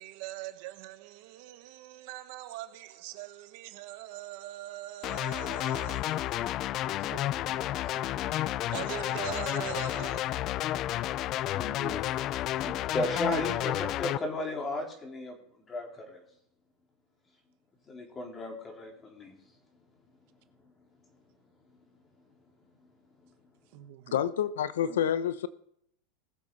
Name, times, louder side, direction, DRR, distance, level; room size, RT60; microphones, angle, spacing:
voice 1, 0.0-6.5 7.0-8.1 8.7-10.2 23.7-24.1 24.8-25.0, right 15 dB, 65° right, 1.3 m, -42 dB
sound 1, 5.0-14.2, left 14 dB, 45° left, 0.3 m, -31 dB
voice 2, 8.1-8.7 11.5-12.1 12.4-15.4 15.7-16.2 17.9-19.3, left 2 dB, 25° left, 3.7 m, -35 dB
voice 3, 24.1-25.5, left 9 dB, 90° left, 0.7 m, -28 dB
20.0 x 7.3 x 4.0 m
supercardioid pair, 120°, 0 cm